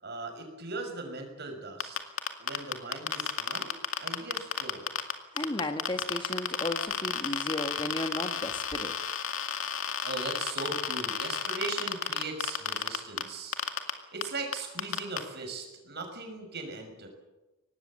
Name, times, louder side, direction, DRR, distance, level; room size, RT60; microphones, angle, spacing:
voice 1, 0.0-2.0 2.4-3.7 4.0-4.9 10.0-13.6 14.1-17.1, right 3 dB, 50° right, 4 dB, 6.1 m, -39 dB
sound 1, 1.8-5.1 5.4-13.2 13.5-13.9 14.2-14.3 14.5-15.2, left 8 dB, 75° left, 2.2 m, -31 dB
voice 2, 5.3-9.0, left 1 dB, 25° left, 7 dB, 1.4 m, -34 dB
24.0 x 19.5 x 7.5 m, 1.1 s
head